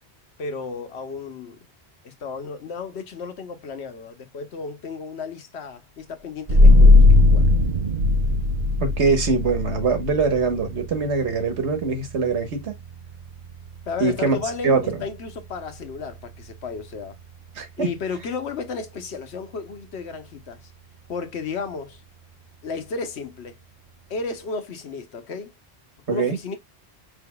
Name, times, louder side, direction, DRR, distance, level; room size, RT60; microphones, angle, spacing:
voice 1, 0.4-1.6 2.0-7.5 13.9-17.2 17.8-20.7 21.1-22.0 22.6-23.6 24.1-25.5 26.1-26.6, left 4 dB, 70° left, 1.1 m, -33 dB
sound 1, 6.5-17.7, left 2 dB, 40° right, 0.7 m, -20 dB
voice 2, 8.8-12.7 14.0-14.4 14.6-15.0 17.6-17.9 26.1-26.4, right 4 dB, 85° right, 1.5 m, -23 dB
5.2 x 3.5 x 2.2 m
omnidirectional pair, 1.1 m